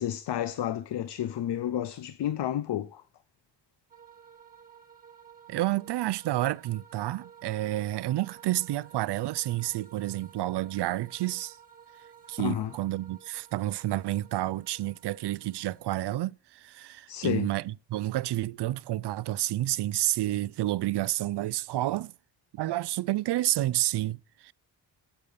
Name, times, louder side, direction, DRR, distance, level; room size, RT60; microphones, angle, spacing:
voice 1, 0.0-3.0 12.4-12.7 17.1-17.5, left 11 dB, 70° left, 0.8 m, -31 dB
sound 1, 3.9-16.0, right 8 dB, 20° right, 1.5 m, -54 dB
voice 2, 5.5-11.6 12.3-22.1 22.5-24.5, right 15 dB, 65° right, 0.5 m, -30 dB
8.5 x 8.2 x 7.0 m
wide cardioid pair, 150°, 44 cm